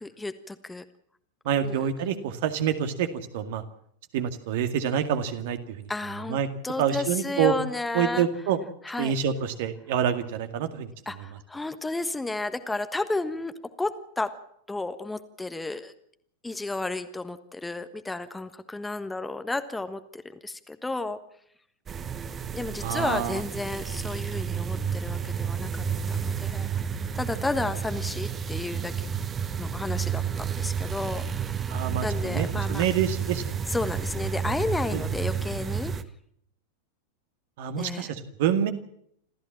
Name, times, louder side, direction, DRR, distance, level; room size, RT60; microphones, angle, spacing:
voice 1, 0.0-0.8 1.6-1.9 5.9-8.3 8.8-9.1 11.1-13.5 13.8-14.3 14.7-15.9 16.4-21.2 22.5-28.9 29.6-32.8 33.7-35.9 37.8-38.1, left 2 dB, 10° left, 10 dB, 1.3 m, -32 dB
voice 2, 1.5-3.1 3.3-3.6 4.1-5.9 6.3-6.5 6.8-7.5 7.9-8.6 9.0-10.9 22.8-23.4 31.7-33.7 34.9-35.0 37.6-38.7, right 9 dB, 50° right, 8 dB, 2.1 m, -27 dB
sound 1, 21.9-36.0, right 7 dB, 20° right, 1.2 m, -31 dB
27.5 x 14.5 x 7.5 m, 0.71 s
figure-of-eight pair, 90°, 0 cm